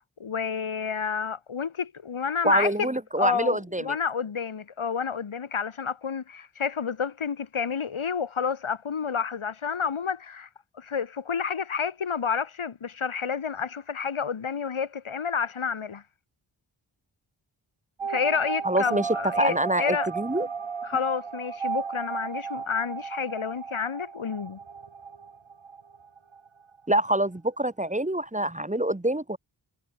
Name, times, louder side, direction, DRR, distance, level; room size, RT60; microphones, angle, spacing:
voice 1, 0.0-2.9 3.2-10.5 10.7-16.0 18.1-20.1 20.4-20.5 20.8-24.6, left 6 dB, 85° left, 4.6 m, -30 dB
voice 2, 2.4-3.8 18.7-19.1 19.4-20.5 26.9-29.4, right 1 dB, 15° right, 2.0 m, -25 dB
sound 1, 18.0-26.5 26.8-26.9 27.1-27.2, right 5 dB, 75° right, 5.5 m, -34 dB
cardioid pair, 50°, 48 cm